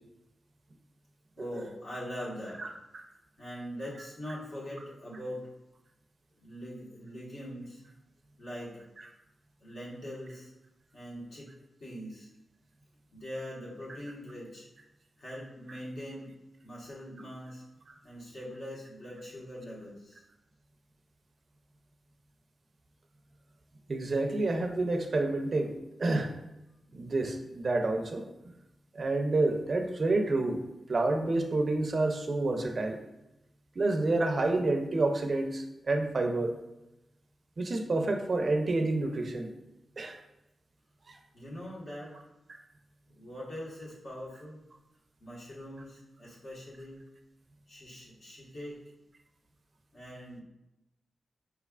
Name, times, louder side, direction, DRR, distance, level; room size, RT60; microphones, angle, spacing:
voice 1, 1.4-2.6 3.4-5.4 6.4-7.8 8.4-8.8 9.6-10.5 10.9-11.5 11.8-12.3 13.1-14.7 15.2-16.3 16.6-17.6 18.0-20.2 41.3-42.1 43.1-44.6 45.2-47.0 47.7-48.8 49.9-50.4, equal, 65° left, -6 dB, 1.4 m, -42 dB
voice 2, 23.9-25.7 26.0-26.3 26.9-28.2 28.9-30.6 30.9-33.0 33.8-36.5 37.6-39.5 40.0-40.2 41.1-41.2 42.5-42.6, right 2 dB, 45° right, 4 dB, 0.5 m, -28 dB
4.8 x 3.2 x 2.4 m, 0.92 s
wide cardioid pair, 95°, 0 cm